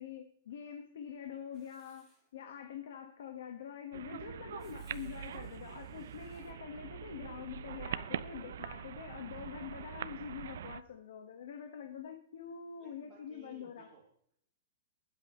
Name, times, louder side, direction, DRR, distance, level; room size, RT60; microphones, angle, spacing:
voice 1, 0.0-13.9, left 8 dB, 65° left, 1.6 m, -45 dB
Writing, 1.5-2.3 4.6-6.5, left 2 dB, 10° left, 2.1 m, -68 dB
sound 1, 3.9-10.8, right 9 dB, 65° right, 0.6 m, -43 dB
voice 2, 6.3-6.7 12.8-14.4, right 6 dB, 15° right, 2.5 m, -60 dB
21.0 x 8.1 x 3.2 m
hypercardioid pair, 170°, 0 cm